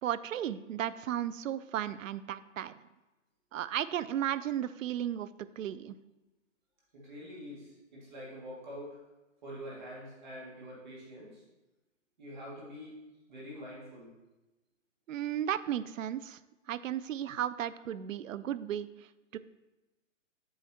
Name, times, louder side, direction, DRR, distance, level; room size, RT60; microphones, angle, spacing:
voice 1, 0.0-2.7 3.5-5.3 5.6-5.9 15.1-16.4 16.7-18.9 19.3-19.4, right 11 dB, 85° right, 16 dB, 0.5 m, -34 dB
voice 2, 6.9-9.0 9.4-11.4 12.2-12.9 13.3-14.2, equal, 35° right, -5 dB, 2.2 m, -45 dB
8.5 x 6.2 x 2.9 m, 1.1 s
hypercardioid pair, 180°, 38 cm